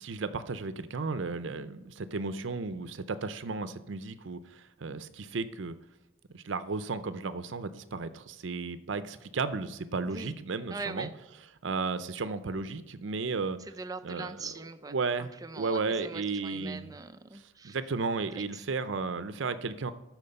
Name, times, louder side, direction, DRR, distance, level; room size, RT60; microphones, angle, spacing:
voice 1, 0.0-5.8 6.3-11.1 11.6-13.6 14.0-14.5 14.9-15.3 15.6-16.9 17.3-19.9, right 4 dB, 70° right, 12 dB, 0.6 m, -34 dB
voice 2, 10.7-11.1 13.7-14.9 15.4-17.8 18.3-18.4, right 3 dB, 20° right, 9 dB, 0.4 m, -41 dB
12.5 x 4.5 x 5.3 m, 1.0 s
head